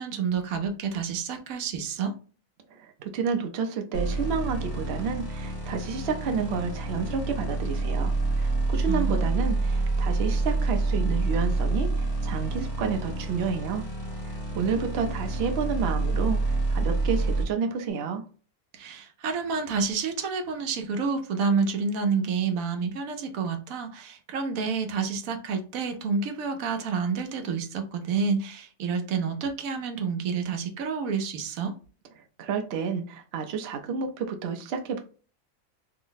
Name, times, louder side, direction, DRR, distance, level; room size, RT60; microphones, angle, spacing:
voice 1, 0.0-2.1 8.9-9.6 18.7-31.7, right 5 dB, 80° right, 1.1 m, -29 dB
voice 2, 2.7-13.9 14.5-18.2 32.4-35.0, right 5 dB, 60° right, 0.7 m, -30 dB
sound 1, 3.9-17.5, right 3 dB, 55° left, 1.3 m, -28 dB
3.3 x 2.0 x 3.8 m
omnidirectional pair, 1.5 m